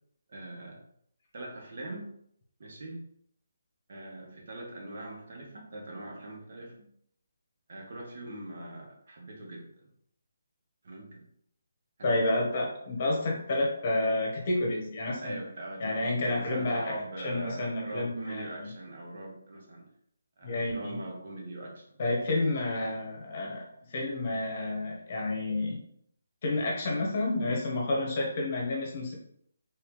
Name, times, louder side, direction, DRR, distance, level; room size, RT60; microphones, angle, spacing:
voice 1, 0.3-0.8 1.3-2.1 2.6-3.0 3.9-6.9 7.7-9.6 10.8-11.2 12.0-12.2 15.2-19.8 20.4-21.8, right 1 dB, 55° right, -1 dB, 1.2 m, -42 dB
voice 2, 12.0-15.4 15.8-18.7 20.4-21.0 22.0-23.6 23.9-25.8 26.4-29.1, left 2 dB, 40° left, -1 dB, 1.1 m, -30 dB
3.4 x 3.3 x 3.1 m, 0.68 s
figure-of-eight pair, 155°, 0 cm